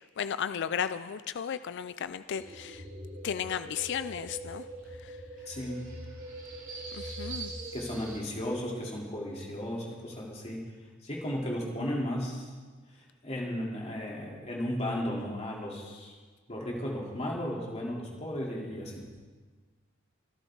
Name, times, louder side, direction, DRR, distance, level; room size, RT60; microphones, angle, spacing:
voice 1, 0.0-2.8 3.2-4.6 5.0-5.2 6.9-7.5, left 8 dB, 55° left, 12 dB, 0.4 m, -34 dB
sound 1, 2.3-8.2, right 2 dB, 40° right, 3.3 m, -42 dB
voice 2, 5.5-5.8 7.7-10.6 11.0-12.5 12.9-16.1 16.5-19.0, equal, 30° left, -3 dB, 3.3 m, -35 dB
24.5 x 12.0 x 3.9 m, 1.4 s
head